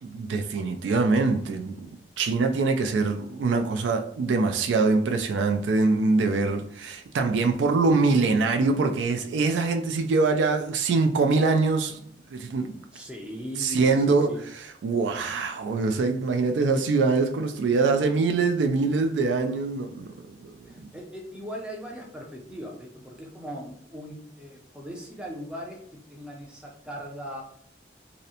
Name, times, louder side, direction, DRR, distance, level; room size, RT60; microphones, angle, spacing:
voice 1, 0.0-1.9 2.2-12.0 12.3-12.8 13.6-14.4 14.8-20.1 20.4-20.9, right 3 dB, 85° right, 0.3 m, -24 dB
voice 2, 12.9-14.4 20.6-27.4, equal, 5° right, 0.4 m, -39 dB
2.6 x 2.0 x 2.7 m
head